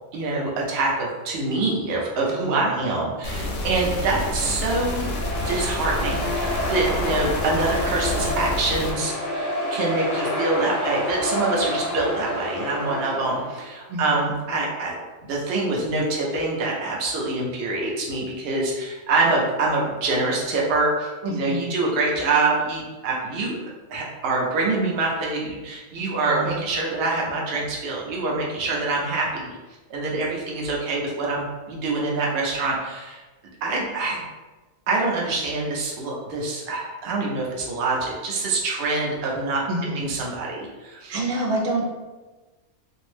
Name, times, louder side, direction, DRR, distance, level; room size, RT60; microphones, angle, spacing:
voice 1, 0.1-5.1 5.4-14.9 15.2-23.6 23.9-29.6 29.9-33.2 33.6-34.2 34.9-39.6 39.9-41.2, right 3 dB, 65° right, -3 dB, 0.8 m, -25 dB
voice 2, 2.3-3.0 13.9-14.4 21.2-21.7 26.2-26.6 39.7-40.0 41.1-41.9, right 1 dB, 90° right, -2 dB, 1.0 m, -28 dB
sound 1, 3.2-8.9, left 1 dB, 85° left, 0.9 m, -29 dB
sound 2, 4.0-13.8, left 1 dB, 60° left, 0.6 m, -29 dB
2.6 x 2.0 x 3.1 m, 1.2 s
omnidirectional pair, 1.2 m